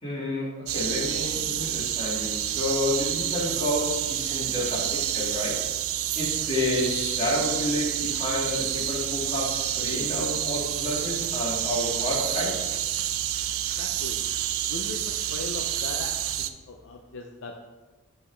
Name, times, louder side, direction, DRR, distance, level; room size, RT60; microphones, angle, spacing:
voice 1, 0.0-5.5 6.2-12.7, left 1 dB, 25° left, -6 dB, 1.9 m, -30 dB
sound 1, 0.7-16.5, right 11 dB, 65° right, 0.4 m, -29 dB
voice 2, 13.8-14.2 14.7-17.6, left 3 dB, 55° left, 3 dB, 0.4 m, -39 dB
9.4 x 3.9 x 3.3 m, 1.3 s
head